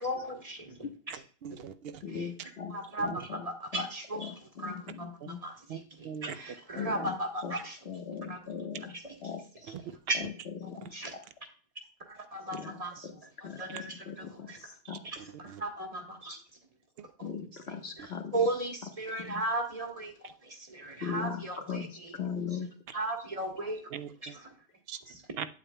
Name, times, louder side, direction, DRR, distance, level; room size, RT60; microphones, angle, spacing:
voice 1, 0.0-0.8 1.1-1.2 2.1-2.3 2.7-5.1 5.4-7.8 8.3-8.4 8.9-9.1 10.1-10.2 10.9-11.1 12.1-13.1 13.4-14.6 15.0-16.4 17.2-17.3 18.0-20.1 20.4-22.1 22.9-23.8 24.2-24.5 25.1-25.2, right 2 dB, 35° right, 2 dB, 1.4 m, -36 dB
voice 2, 1.1-2.0 3.1-3.2 5.2-5.3 5.7-6.3 6.7-6.8 9.7-9.8 15.2-15.6 23.9-24.3 24.9-25.0 25.4-25.5, right 8 dB, 75° right, 12 dB, 0.8 m, -41 dB
voice 3, 2.0-2.7 3.0-3.5 3.7-3.8 4.2-5.4 6.7-7.1 7.4-7.5 7.8-8.9 9.2-9.4 10.6-11.0 12.5-13.1 13.4-15.0 17.2-18.7 19.3-19.4 21.0-22.7, left 6 dB, 90° left, 3 dB, 1.5 m, -39 dB
8.7 x 8.4 x 2.2 m, 0.43 s
omnidirectional pair, 1.0 m